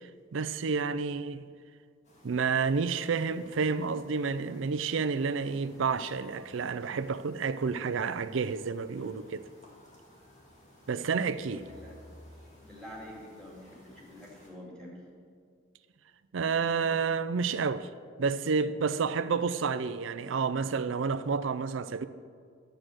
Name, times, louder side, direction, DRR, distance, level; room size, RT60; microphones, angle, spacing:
voice 1, 0.0-1.4 2.2-9.4 10.9-11.6 16.3-17.9 18.2-22.1, right 5 dB, 70° right, 0.5 m, -30 dB
sound 1, 2.0-14.5, left 1 dB, 35° left, 2.4 m, -57 dB
voice 2, 11.6-12.0 12.6-15.0, equal, 5° left, 2.5 m, -47 dB
11.0 x 7.6 x 6.4 m
head